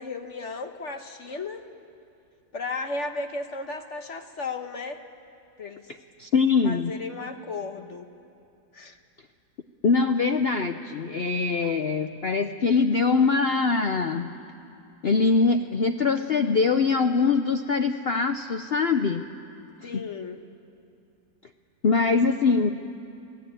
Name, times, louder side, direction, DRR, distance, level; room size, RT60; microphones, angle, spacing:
voice 1, 0.0-1.7 2.5-5.0 5.6-5.9 6.6-8.1 8.7-9.0 19.8-20.4, left 3 dB, 45° left, 6 dB, 1.2 m, -34 dB
voice 2, 6.2-6.9 9.8-14.3 15.0-19.2 19.8-20.0 21.8-22.7, left 4 dB, 75° left, 7 dB, 0.5 m, -23 dB
28.0 x 17.5 x 9.2 m, 2.6 s
omnidirectional pair, 2.0 m